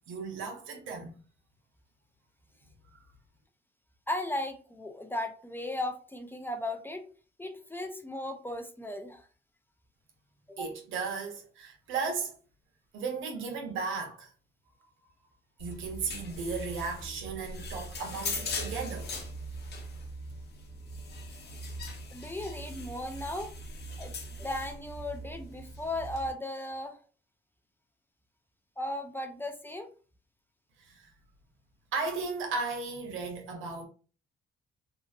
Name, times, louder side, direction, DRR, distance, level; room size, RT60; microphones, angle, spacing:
voice 1, 0.1-1.1 10.6-12.3 12.9-14.3 15.6-19.1 30.8-31.1 31.9-33.8, right 4 dB, 85° right, 0.8 m, -35 dB
voice 2, 4.1-7.1 7.4-9.3 10.5-10.7 22.1-23.5 24.0-27.0 28.8-29.9, left 1 dB, 10° left, 0.4 m, -36 dB
sound 1, 15.6-26.3, left 1 dB, 55° left, 0.8 m, -40 dB
2.9 x 2.4 x 2.4 m
cardioid pair, 90°, 20 cm